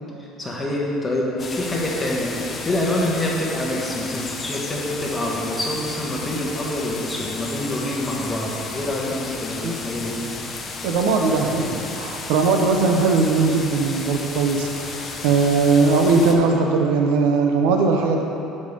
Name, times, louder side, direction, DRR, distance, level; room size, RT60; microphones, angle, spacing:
voice 1, 0.4-10.2, left 1 dB, 15° left, -3 dB, 1.2 m, -26 dB
sound 1, 1.4-16.3, left 3 dB, 30° left, 0.7 m, -33 dB
voice 2, 10.8-18.2, right 4 dB, 90° right, 3 dB, 0.7 m, -19 dB
5.4 x 5.2 x 6.5 m, 3.0 s
cardioid pair, 140°, 0 cm